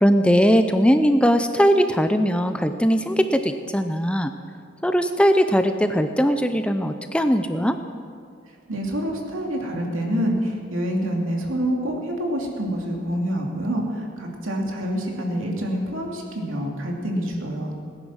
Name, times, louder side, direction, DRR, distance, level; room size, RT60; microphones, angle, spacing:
voice 1, 0.0-4.3 4.8-7.8, equal, 5° left, 8 dB, 0.5 m, -19 dB
voice 2, 8.7-17.8, equal, 90° right, 0 dB, 2.6 m, -27 dB
18.0 x 10.5 x 6.3 m, 2.3 s
head